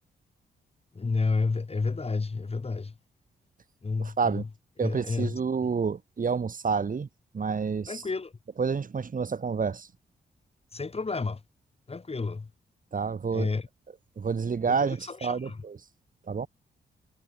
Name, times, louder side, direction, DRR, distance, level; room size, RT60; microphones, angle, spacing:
voice 1, 0.9-2.9 3.8-4.5 4.8-5.4 7.9-8.3 10.7-11.4 11.9-12.5 13.3-13.7 14.7-15.6, left 4 dB, 30° left, 1.4 m, -30 dB
voice 2, 4.0-4.4 4.8-7.1 7.3-8.0 8.6-9.9 12.9-13.5 14.2-15.8 16.3-16.5, right 5 dB, 45° right, 1.4 m, -29 dB
supercardioid pair, 50°, 19 cm